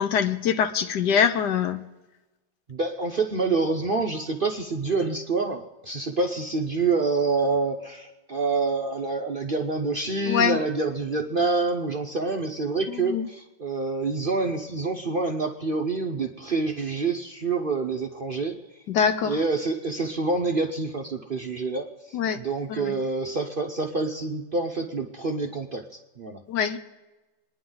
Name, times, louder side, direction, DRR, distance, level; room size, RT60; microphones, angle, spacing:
voice 1, 0.0-1.8 10.3-10.6 13.1-13.3 18.9-19.3 22.1-22.4 22.9-23.0 26.5-26.8, left 7 dB, 65° left, 9 dB, 1.3 m, -23 dB
voice 2, 2.7-18.8 19.3-26.4, right 3 dB, 55° right, 3 dB, 0.6 m, -27 dB
25.5 x 10.5 x 3.9 m, 1.1 s
omnidirectional pair, 2.1 m